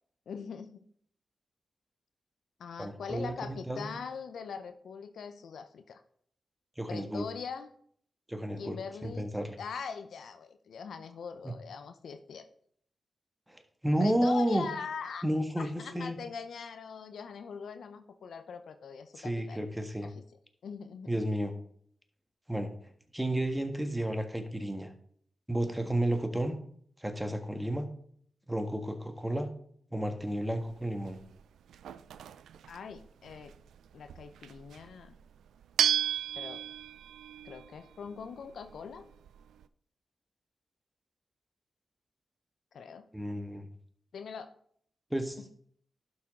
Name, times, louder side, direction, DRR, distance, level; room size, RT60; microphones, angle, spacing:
voice 1, 0.3-0.8 2.6-6.0 6.9-7.7 8.6-9.3 9.6-12.5 14.0-15.2 15.6-19.6 20.0-20.1 20.6-21.1 25.6-26.0 32.7-33.5 33.9-35.2 36.4-36.6 37.4-39.1 42.7-43.1 44.1-44.5, left 6 dB, 80° left, 9 dB, 0.7 m, -42 dB
voice 2, 2.8-3.9 6.8-7.3 8.3-9.6 11.4-11.5 13.5-14.7 15.2-16.2 19.2-20.1 21.1-21.5 22.5-22.7 23.1-24.9 25.5-26.6 27.0-27.9 28.5-29.5 29.9-31.2 43.1-43.7 45.1-45.4, right 1 dB, 10° right, 6 dB, 1.6 m, -32 dB
sound 1, 30.2-39.7, right 9 dB, 90° right, 0.3 m, -36 dB
11.5 x 6.1 x 3.7 m, 0.63 s
supercardioid pair, 45°, 0 cm